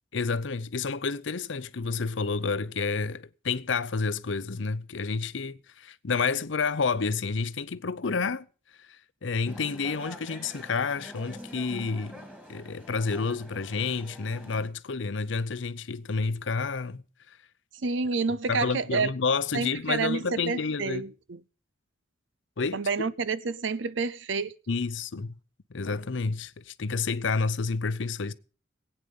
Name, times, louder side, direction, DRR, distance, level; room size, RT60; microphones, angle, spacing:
voice 1, 0.1-8.5 8.8-12.2 12.5-17.0 18.5-21.0 22.6-22.8 24.7-25.4 25.7-28.3, left 4 dB, 75° left, 0.7 m, -30 dB
sound 1, 9.5-14.7, equal, 5° right, 2.6 m, -45 dB
voice 2, 17.8-19.1 19.5-21.4 22.7-24.5, right 4 dB, 70° right, 0.6 m, -29 dB
19.5 x 9.1 x 5.3 m
head